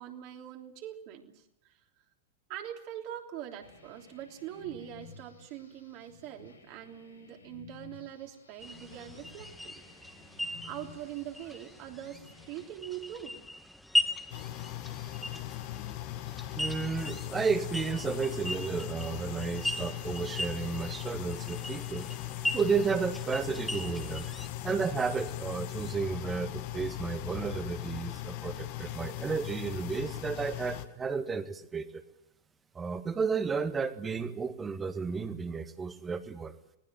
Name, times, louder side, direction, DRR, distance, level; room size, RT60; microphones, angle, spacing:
voice 1, 0.0-1.8 2.5-9.8 10.6-13.5, right 11 dB, 45° right, 3 dB, 3.2 m, -43 dB
sound 1, 3.6-12.7, left 5 dB, 85° left, 6.3 m, -55 dB
sound 2, 8.6-24.5, left 1 dB, 5° left, 1.8 m, -38 dB
sound 3, 14.3-30.9, left 14 dB, 50° left, 1.7 m, -39 dB
voice 2, 16.6-22.1 22.5-24.3 24.6-32.0 32.8-36.5, right 5 dB, 15° right, 10 dB, 1.8 m, -32 dB
24.5 x 19.5 x 7.6 m, 0.82 s
figure-of-eight pair, 90°, 0 cm